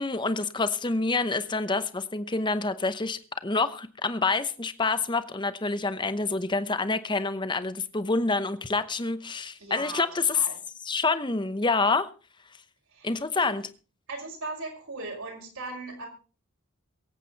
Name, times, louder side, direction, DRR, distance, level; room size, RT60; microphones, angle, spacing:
voice 1, 0.0-10.4 10.8-12.1 13.0-13.6, left 3 dB, 20° left, 0.9 m, -27 dB
voice 2, 9.6-10.1 10.3-10.5 12.9-13.6 14.1-16.1, right 2 dB, 75° right, 5.7 m, -38 dB
23.0 x 8.3 x 4.1 m
head